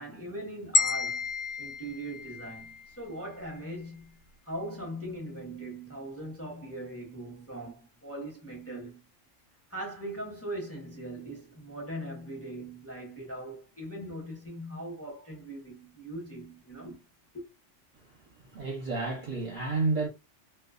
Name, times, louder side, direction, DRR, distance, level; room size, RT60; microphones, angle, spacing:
voice 1, 0.0-9.0 9.7-17.0 17.3-17.4, right 1 dB, 15° left, 0.7 m, -40 dB
sound 1, 0.7-2.9, left 4 dB, 65° left, 0.8 m, -30 dB
voice 2, 18.5-20.1, right 3 dB, 45° right, 0.7 m, -30 dB
2.3 x 2.3 x 2.3 m
omnidirectional pair, 1.3 m